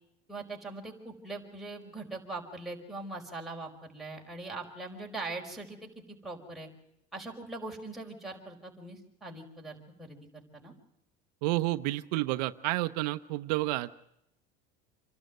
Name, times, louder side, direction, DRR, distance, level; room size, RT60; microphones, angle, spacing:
voice 1, 0.3-6.7 7.1-10.2 10.5-10.7, right 2 dB, ahead, -2 dB, 4.9 m, -41 dB
voice 2, 11.4-14.0, right 18 dB, 80° right, 11 dB, 0.8 m, -30 dB
27.0 x 12.0 x 9.3 m, 0.82 s
supercardioid pair, 125°, 20 cm